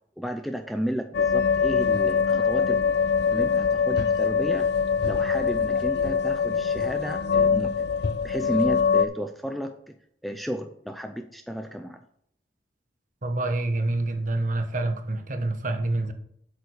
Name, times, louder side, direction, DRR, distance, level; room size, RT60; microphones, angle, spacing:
voice 1, 0.2-2.8 3.3-4.7 5.0-7.9 8.2-9.9 10.2-12.0, equal, ahead, 6 dB, 0.5 m, -32 dB
sound 1, 1.1-9.1, left 6 dB, 65° left, 0.5 m, -23 dB
voice 2, 13.2-16.1, right 2 dB, 45° right, 6 dB, 1.2 m, -27 dB
8.2 x 7.1 x 5.0 m, 0.67 s
head